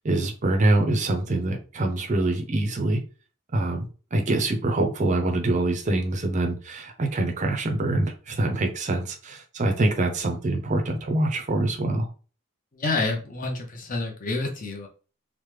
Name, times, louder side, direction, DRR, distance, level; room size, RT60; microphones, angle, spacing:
voice 1, 0.0-3.0 3.5-3.9 4.1-12.1, right 2 dB, 35° right, 3 dB, 0.4 m, -24 dB
voice 2, 12.7-14.9, left 3 dB, 40° left, 3 dB, 0.6 m, -28 dB
3.1 x 2.1 x 3.2 m, 0.37 s
head